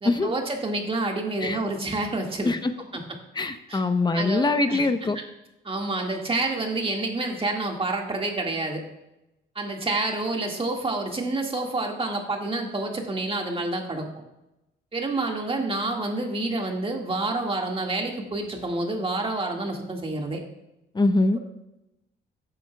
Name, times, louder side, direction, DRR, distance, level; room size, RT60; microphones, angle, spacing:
voice 1, 0.0-2.5 2.9-3.0 3.7-3.8 4.1-4.8 5.6-8.8 9.6-14.1 14.9-20.4, right 2 dB, 25° right, 1 dB, 1.9 m, -28 dB
voice 2, 3.3-5.2 20.9-21.4, left 2 dB, 20° left, 9 dB, 0.9 m, -23 dB
14.5 x 8.9 x 2.3 m, 0.94 s
cardioid pair, 90°, 20 cm